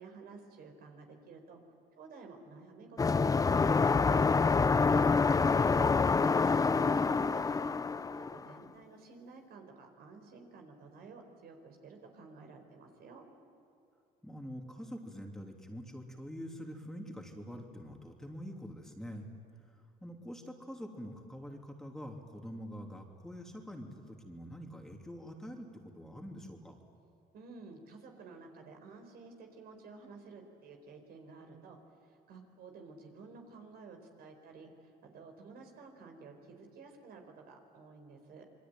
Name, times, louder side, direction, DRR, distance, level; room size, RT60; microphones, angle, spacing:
voice 1, 0.0-1.6 2.0-4.7 4.9-5.8 6.6-7.8 8.1-13.3 27.3-38.4, right 4 dB, 65° right, 4 dB, 4.6 m, -52 dB
sound 1, 3.0-8.5, left 4 dB, 20° left, 0.6 m, -27 dB
voice 2, 14.2-19.3 19.6-26.8, equal, 5° left, 1 dB, 3.1 m, -45 dB
27.5 x 22.5 x 9.2 m, 2.7 s
cardioid pair, 110°, 17 cm